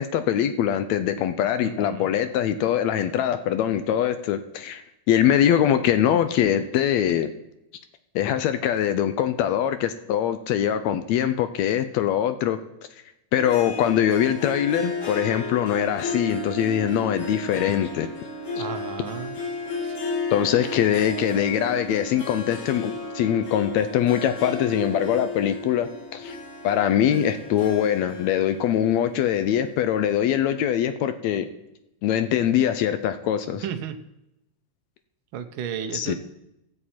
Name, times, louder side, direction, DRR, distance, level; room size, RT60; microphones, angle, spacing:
voice 1, 0.0-7.3 8.2-12.6 13.3-18.1 20.3-26.4 26.6-31.5 32.0-33.6 35.9-36.1, left 10 dB, 75° left, 10 dB, 1.8 m, -23 dB
voice 2, 1.6-2.2 18.5-19.4 19.8-20.0 33.6-34.0 35.3-36.1, right 8 dB, 80° right, 7 dB, 1.1 m, -33 dB
Harp, 13.4-29.9, left 2 dB, 55° left, 2.8 m, -34 dB
15.5 x 7.6 x 4.3 m, 0.88 s
omnidirectional pair, 3.3 m